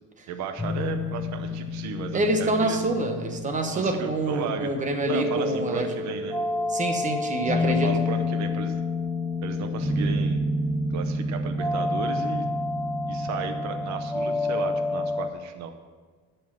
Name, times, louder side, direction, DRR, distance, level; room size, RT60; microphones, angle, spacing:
voice 1, 0.3-2.8 3.7-4.8 5.1-6.4 7.5-8.8 9.4-10.5 10.9-12.5 13.1-15.7, right 6 dB, 55° right, 7 dB, 0.8 m, -34 dB
sound 1, 0.6-15.3, left 2 dB, 5° left, 0.3 m, -28 dB
voice 2, 2.1-5.9 6.7-7.9, right 2 dB, 20° right, 6 dB, 1.0 m, -26 dB
11.5 x 5.6 x 7.5 m, 1.5 s
cardioid pair, 175°, 34 cm